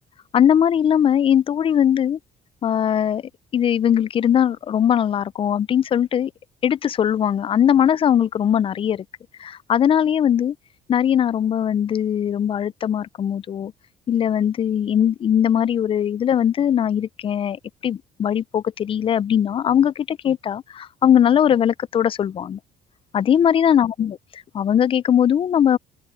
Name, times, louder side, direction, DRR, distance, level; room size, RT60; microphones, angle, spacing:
voice 1, 0.3-2.2 2.6-3.2 3.5-6.3 6.6-9.0 9.4-10.5 10.9-13.7 14.1-22.6 23.1-24.2 24.5-25.8, left 9 dB, 30° left, 0.3 m, -20 dB
cardioid pair, 110°, 17 cm